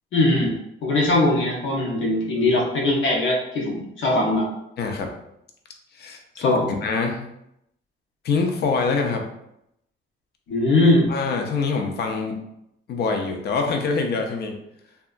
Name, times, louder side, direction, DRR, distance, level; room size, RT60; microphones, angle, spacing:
voice 1, 0.1-0.5 0.8-4.5 6.4-6.6 10.5-11.1, left 2 dB, 75° left, -2 dB, 0.9 m, -20 dB
voice 2, 4.8-5.1 5.9-7.3 8.2-9.3 11.1-12.4 12.9-14.6, left 4 dB, 55° left, 3 dB, 0.5 m, -25 dB
2.7 x 2.3 x 2.4 m, 0.79 s
cardioid pair, 90°, 20 cm